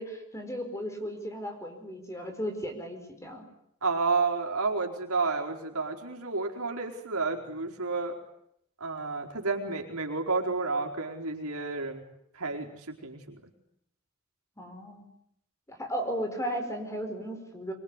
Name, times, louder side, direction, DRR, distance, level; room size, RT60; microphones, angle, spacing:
voice 1, 0.0-3.4 14.6-15.1 15.7-17.7, equal, 15° left, 5 dB, 4.9 m, -35 dB
voice 2, 3.8-8.2 8.8-12.0 12.3-13.4, right 4 dB, 80° right, 2 dB, 4.6 m, -31 dB
24.5 x 23.5 x 9.9 m, 0.74 s
head